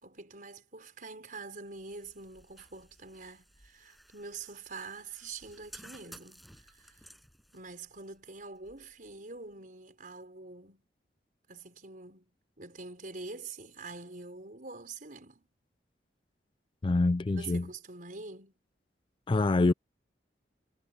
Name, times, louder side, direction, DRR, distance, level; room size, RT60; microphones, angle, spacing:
voice 1, 0.0-7.0 7.5-10.8 11.5-12.3 12.6-15.5 17.3-18.5, right 3 dB, 50° right, 5.0 m, -45 dB
sound 1, 1.7-9.5, equal, ahead, 8.0 m, -56 dB
voice 2, 16.8-17.7 19.3-19.7, left 2 dB, 30° left, 0.4 m, -25 dB
head